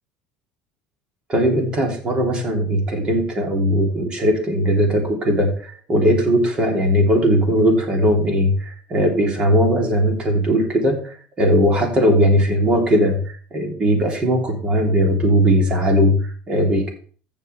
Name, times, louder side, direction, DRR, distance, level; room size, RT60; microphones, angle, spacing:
voice 1, 1.3-16.9, equal, 30° right, 1 dB, 3.3 m, -19 dB
14.5 x 6.9 x 3.5 m, 0.42 s
cardioid pair, 135°, 4 cm